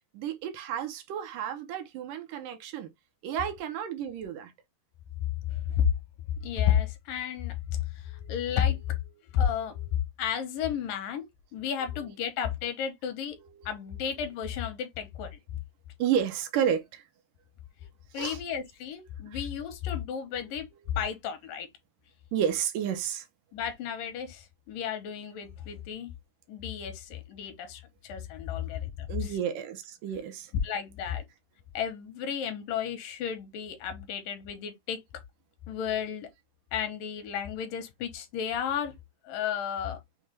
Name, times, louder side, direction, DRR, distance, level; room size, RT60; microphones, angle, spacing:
voice 1, 0.1-2.9 3.2-4.5 8.1-8.7 9.4-9.9 11.8-12.1 13.3-14.4 16.0-17.1 18.1-18.4 19.3-19.5 20.4-20.9 22.3-23.3 29.1-30.5, right 9 dB, 80° right, 2.2 m, -33 dB
voice 2, 5.5-5.9 6.4-8.8 9.3-9.7 10.2-11.2 11.5-13.4 13.7-15.4 18.1-21.7 23.5-26.1 26.5-29.2 30.6-31.2 31.7-35.0 35.7-36.3 36.7-38.9 39.3-40.0, left 9 dB, 80° left, 2.5 m, -32 dB
6.4 x 2.2 x 3.2 m
omnidirectional pair, 3.9 m